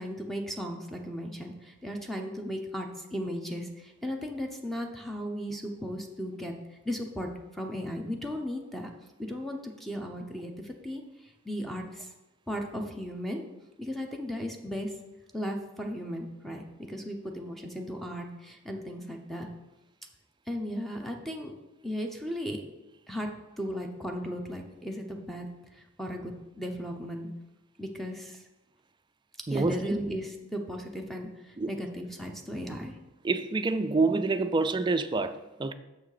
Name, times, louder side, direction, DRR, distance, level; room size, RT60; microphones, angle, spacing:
voice 1, 0.0-6.5 6.8-8.9 9.2-11.0 11.4-12.1 12.5-13.4 13.8-14.9 15.3-19.5 20.5-21.5 21.8-22.6 23.1-23.3 23.6-25.5 25.7-27.3 27.8-28.4 29.5-32.9, equal, ahead, 0.7 m, -36 dB
voice 2, 29.5-30.0 31.6-31.7 33.2-35.7, right 3 dB, 25° right, 0.4 m, -27 dB
6.6 x 6.0 x 4.9 m
head